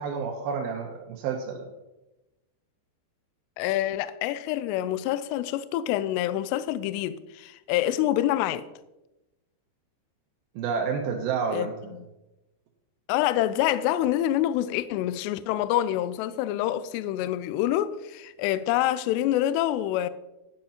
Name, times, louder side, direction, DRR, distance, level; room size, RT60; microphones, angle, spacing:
voice 1, 0.0-1.7 10.6-12.0, right 6 dB, 80° right, 2.2 m, -30 dB
voice 2, 3.6-8.6 11.5-11.7 13.1-20.1, left 13 dB, 85° left, 2.5 m, -26 dB
11.5 x 10.5 x 2.9 m
omnidirectional pair, 5.3 m